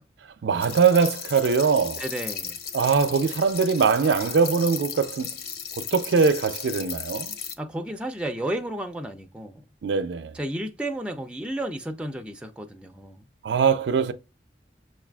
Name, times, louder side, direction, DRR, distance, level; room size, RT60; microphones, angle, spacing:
voice 1, 0.4-2.0 2.7-5.3 5.7-7.3 9.8-10.3 13.4-14.1, right 5 dB, 75° right, 0.4 m, -22 dB
sound 1, 0.6-7.5, left 7 dB, 55° left, 0.5 m, -35 dB
voice 2, 2.0-2.6 7.6-9.6 10.3-13.3, right 1 dB, 5° right, 0.3 m, -32 dB
6.3 x 2.4 x 2.2 m
head